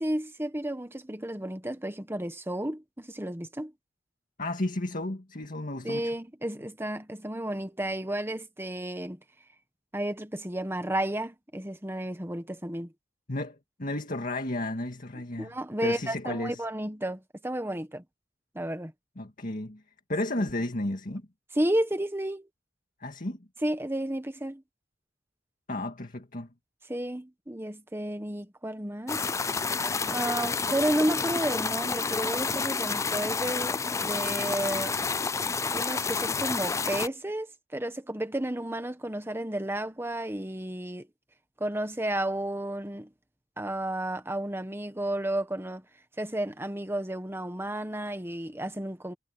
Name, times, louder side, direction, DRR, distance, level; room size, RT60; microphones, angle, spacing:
voice 1, 0.0-3.7 5.8-9.2 9.9-12.9 15.4-18.0 18.5-18.9 20.4-20.5 21.5-22.5 23.6-24.6 26.9-29.3 30.1-33.8 34.0-34.9 35.7-37.5 37.7-41.1 41.6-43.1 43.6-45.8 46.2-49.1, right 1 dB, 15° right, 1.5 m, -32 dB
voice 2, 4.4-6.1 13.3-15.5 15.8-16.6 19.2-19.8 20.1-21.3 23.0-23.4 25.7-26.5, left 1 dB, 45° left, 2.0 m, -33 dB
sound 1, 29.1-37.1, left 4 dB, 15° left, 0.4 m, -29 dB
head